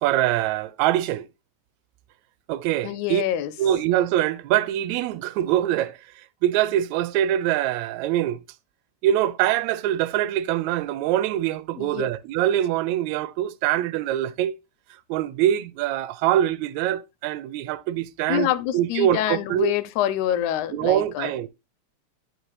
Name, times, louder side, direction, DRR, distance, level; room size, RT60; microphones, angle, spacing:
voice 1, 0.0-1.3 2.5-3.2 3.6-8.4 9.0-14.5 15.1-19.7 20.7-21.5, right 12 dB, 80° right, 1.9 m, -24 dB
voice 2, 2.8-3.5 11.8-12.1 18.3-21.3, left 12 dB, 85° left, 2.1 m, -26 dB
11.0 x 4.7 x 3.1 m
omnidirectional pair, 3.4 m